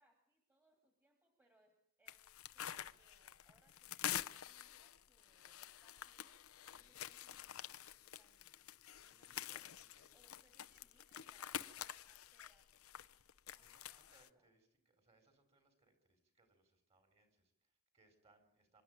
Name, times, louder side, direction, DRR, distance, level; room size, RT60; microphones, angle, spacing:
voice 1, 0.0-1.7 2.0-2.2 2.5-8.6 9.0-9.5 10.1-13.0 13.5-14.5, right 1 dB, 10° right, 2 dB, 2.6 m, -76 dB
sound 1, 2.1-14.3, left 10 dB, 80° left, 0.8 m, -48 dB
voice 2, 8.9-10.1 10.5-10.8 13.6-18.8, right 2 dB, 30° right, 7 dB, 4.3 m, -74 dB
26.0 x 12.5 x 8.9 m, 0.77 s
head